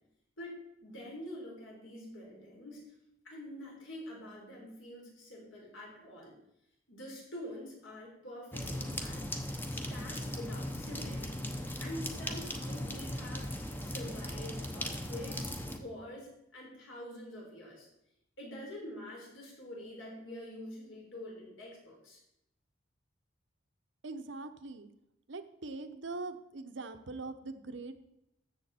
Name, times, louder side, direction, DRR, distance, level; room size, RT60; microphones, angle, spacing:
voice 1, 0.4-2.8 3.2-6.3 6.9-9.2 9.7-11.3 11.8-13.5 13.8-17.9 18.4-22.2, left 1 dB, 70° left, -2 dB, 4.1 m, -46 dB
sound 1, 8.5-15.8, left 1 dB, 10° left, 0.8 m, -38 dB
voice 2, 24.0-24.9 25.3-28.0, right 3 dB, 60° right, 9 dB, 0.8 m, -42 dB
13.5 x 7.7 x 4.3 m, 0.84 s
head